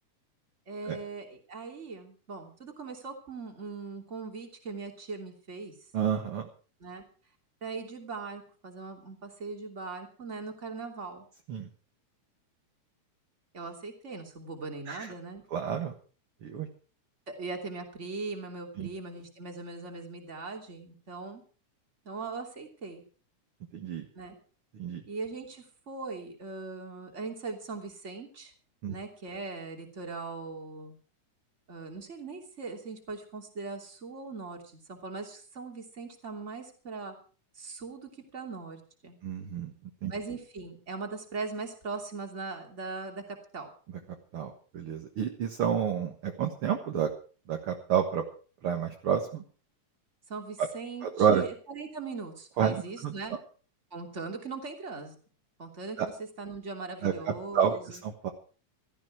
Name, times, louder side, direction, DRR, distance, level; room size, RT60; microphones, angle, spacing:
voice 1, 0.7-5.7 6.8-7.0 7.6-11.2 13.5-15.4 17.3-21.4 22.0-23.0 24.1-24.3 25.1-28.5 28.9-31.0 31.7-37.1 37.5-39.2 40.1-43.7 50.3-53.3 53.9-55.1 55.6-58.0, right 4 dB, 25° right, 3 dB, 3.0 m, -40 dB
voice 2, 5.9-6.5 11.5-11.7 14.9-15.1 15.5-15.9 16.4-16.7 18.8-18.9 23.7-24.0 24.7-25.0 28.8-28.9 39.2-39.7 40.0-40.1 44.3-47.1 47.5-48.2 48.6-49.4 50.6-50.7 51.0-51.4 52.6-53.1 56.0-56.1 57.0-58.3, right 8 dB, 50° right, 4 dB, 2.1 m, -29 dB
16.5 x 13.5 x 4.8 m, 0.39 s
omnidirectional pair, 3.4 m